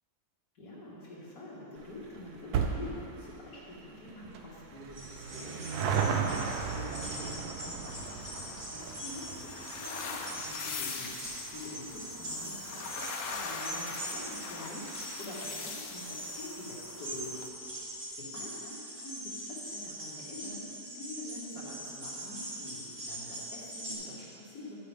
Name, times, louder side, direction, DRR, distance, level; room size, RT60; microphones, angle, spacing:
voice 1, 0.6-8.1 8.7-17.4 18.2-20.7 20.9-24.8, left 1 dB, 90° left, -7 dB, 2.1 m, -46 dB
sound 1, 1.8-14.5 14.8-14.9 15.8-15.9 16.1-16.2 16.5-16.6, right 6 dB, 85° right, 1.2 m, -37 dB
sound 2, 4.9-24.0, right 1 dB, 50° right, 2.3 m, -42 dB
sound 3, 7.9-17.5, left 5 dB, 75° left, 1.1 m, -42 dB
9.8 x 8.5 x 3.5 m, 2.9 s
omnidirectional pair, 1.6 m